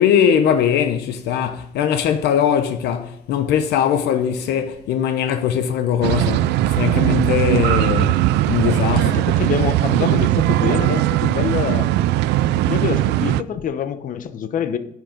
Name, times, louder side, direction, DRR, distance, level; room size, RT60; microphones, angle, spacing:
voice 1, 0.0-9.2, left 8 dB, 75° left, 0.9 m, -20 dB
sound 1, 6.0-13.4, right 14 dB, 85° right, 0.4 m, -19 dB
voice 2, 9.0-11.9 12.7-14.8, left 7 dB, 50° left, 1.0 m, -25 dB
10.0 x 6.5 x 5.1 m
cardioid pair, 110°, 17 cm